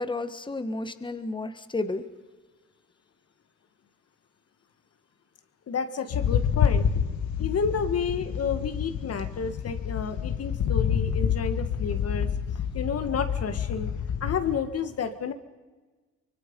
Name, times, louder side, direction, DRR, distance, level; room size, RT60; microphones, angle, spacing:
voice 1, 0.0-2.0, left 2 dB, 15° left, 10 dB, 1.4 m, -32 dB
voice 2, 5.7-6.9 7.4-12.3 12.7-13.9 14.2-15.3, left 6 dB, 55° left, 9 dB, 1.7 m, -30 dB
sound 1, 6.1-14.6, left 8 dB, 75° left, 1.8 m, -28 dB
25.0 x 23.0 x 5.3 m, 1.3 s
cardioid pair, 90°, 30 cm